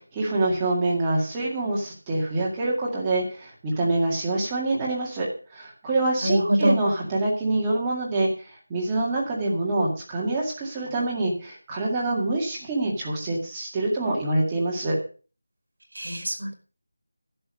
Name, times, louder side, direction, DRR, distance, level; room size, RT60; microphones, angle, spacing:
voice 1, 0.1-8.3 8.7-15.0, right 2 dB, 10° right, -3 dB, 2.0 m, -26 dB
voice 2, 6.2-6.8 15.9-16.6, right 1 dB, 70° right, 4 dB, 4.7 m, -23 dB
11.5 x 7.5 x 6.4 m, 0.37 s
figure-of-eight pair, 180°, 0 cm